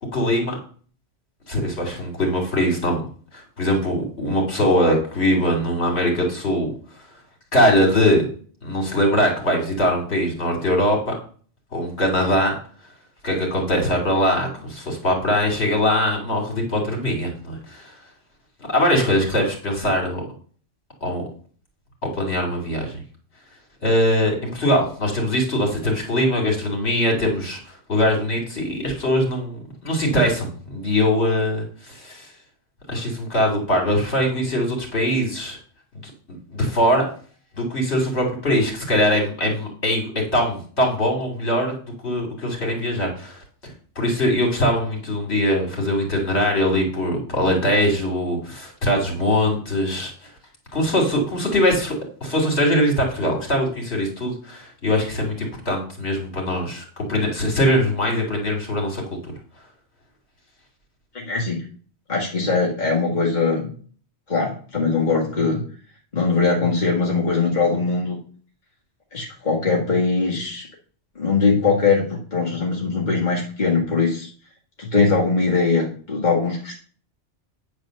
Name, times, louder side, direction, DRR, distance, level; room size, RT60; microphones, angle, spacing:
voice 1, 0.1-0.6 1.5-3.0 3.3-6.7 7.5-8.3 8.6-11.1 11.7-12.5 13.2-17.9 18.7-20.3 21.0-21.2 22.0-23.0 23.8-32.3 32.9-35.6 36.0-36.1 36.5-37.1 37.5-40.1 40.3-41.7 42.0-43.4 43.9-50.1 50.7-52.0 52.2-59.0, equal, 65° left, 1 dB, 3.3 m, -21 dB
voice 2, 61.1-61.6 62.1-63.7 64.3-65.6 66.1-68.2 69.1-70.7 71.2-74.3 74.8-76.8, left 4 dB, 40° left, -3 dB, 2.0 m, -21 dB
9.5 x 4.9 x 6.5 m, 0.44 s
omnidirectional pair, 1.2 m